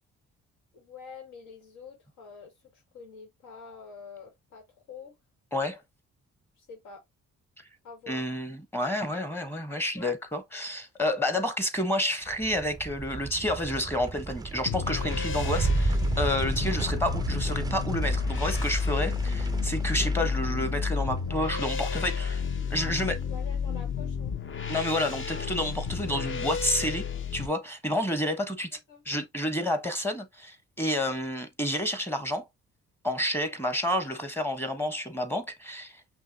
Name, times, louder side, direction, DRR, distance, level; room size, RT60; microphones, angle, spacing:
voice 1, 0.7-5.1 6.6-7.0 7.8-8.2 9.9-10.2 22.7-24.3 28.2-28.3 28.9-29.0, left 5 dB, 80° left, 2.1 m, -46 dB
voice 2, 8.1-22.4 22.7-23.2 24.7-28.7 29.0-32.4 33.0-35.9, left 1 dB, 10° left, 1.1 m, -30 dB
sound 1, 12.3-22.9, right 5 dB, 15° right, 0.3 m, -34 dB
sound 2, 14.6-27.5, left 6 dB, 40° left, 0.9 m, -31 dB
5.5 x 2.8 x 2.7 m
cardioid pair, 90°, 30 cm